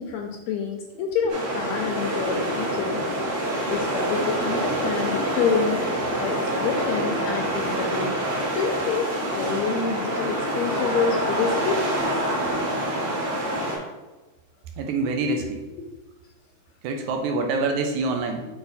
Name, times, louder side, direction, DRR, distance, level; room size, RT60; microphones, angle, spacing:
voice 1, 0.0-3.0 3.7-5.8 6.2-8.1 8.5-11.9 12.3-12.6 15.8-16.0, left 6 dB, 80° left, 2 dB, 1.6 m, -28 dB
sound 1, 1.3-13.8, right 1 dB, 55° right, 2.7 m, -26 dB
voice 2, 14.8-15.6 16.8-18.5, right 3 dB, 75° right, 4 dB, 2.0 m, -26 dB
6.9 x 4.0 x 4.1 m, 1.1 s
omnidirectional pair, 3.6 m